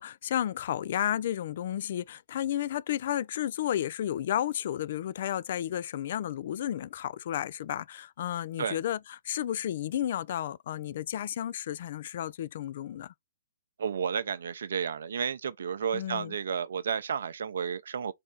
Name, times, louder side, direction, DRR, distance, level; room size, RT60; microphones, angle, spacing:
voice 1, 0.0-13.1 15.9-16.3, left 11 dB, 50° left, 0.3 m, -32 dB
voice 2, 13.8-18.1, right 7 dB, 60° right, 0.6 m, -32 dB
3.7 x 3.0 x 3.8 m
figure-of-eight pair, 120°, 0 cm